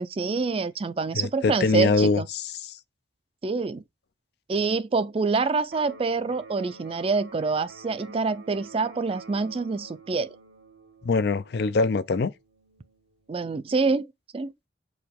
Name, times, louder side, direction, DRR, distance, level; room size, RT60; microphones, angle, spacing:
voice 1, 0.0-2.3 3.4-3.8 4.5-10.4 13.3-14.1 14.3-14.5, right 4 dB, 30° right, 0.4 m, -26 dB
voice 2, 1.1-2.8 11.0-12.3, left 4 dB, 60° left, 0.4 m, -24 dB
Electric guitar, 5.7-13.6, right 3 dB, 90° right, 1.3 m, -49 dB
4.8 x 2.4 x 3.5 m
head